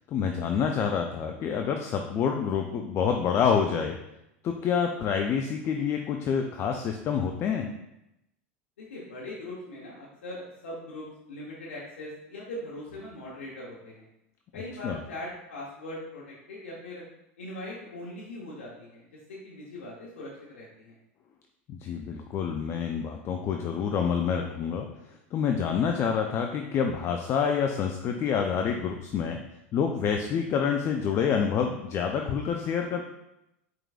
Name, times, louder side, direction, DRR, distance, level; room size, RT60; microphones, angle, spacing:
voice 1, 0.1-4.0 4.4-7.7 14.8-15.0 21.7-24.9 25.3-29.4 29.7-33.0, left 7 dB, 40° left, 4 dB, 0.4 m, -27 dB
voice 2, 8.8-14.0 14.5-17.0 17.4-20.9, left 1 dB, 90° left, -5 dB, 0.9 m, -41 dB
4.6 x 3.7 x 2.3 m, 0.87 s
hypercardioid pair, 95°, 7 cm